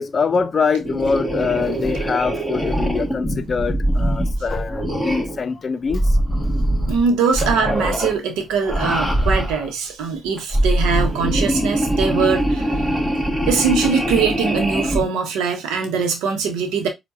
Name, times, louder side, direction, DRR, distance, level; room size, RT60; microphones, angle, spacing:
voice 1, 0.0-6.2, left 5 dB, 45° left, 0.5 m, -23 dB
sound 1, 0.8-5.4 5.9-7.0 7.3-8.2 8.6-9.7 10.4-15.1, equal, 5° left, 1.8 m, -22 dB
voice 2, 6.9-12.7 13.5-16.9, right 5 dB, 85° right, 0.8 m, -21 dB
4.5 x 2.2 x 2.6 m
supercardioid pair, 50°, 0 cm